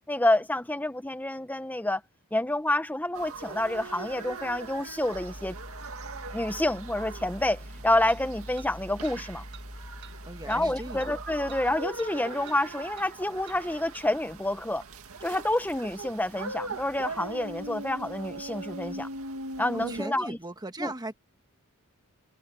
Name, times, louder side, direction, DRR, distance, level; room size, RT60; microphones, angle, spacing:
voice 1, 0.1-2.0 2.3-5.5 6.3-9.4 10.5-14.8 15.2-19.1 19.6-20.4 20.8-20.9, left 1 dB, 10° left, 1.1 m, -28 dB
sound 1, 3.1-20.0, right 3 dB, 75° right, 2.2 m, -41 dB
sound 2, 5.1-11.9, equal, 35° left, 1.9 m, -44 dB
sound 3, 6.5-6.6 8.1-8.2 8.6-8.7 9.0-9.2 9.5-9.7 10.0-10.2 10.5-10.6 11.0-11.1 11.5-11.6 12.0-12.1 12.4-12.6 13.0-13.1 13.5-13.6 13.9-14.1, right 10 dB, 55° right, 5.8 m, -50 dB
voice 2, 10.2-11.1 19.7-21.1, right 2 dB, 20° right, 1.3 m, -38 dB
head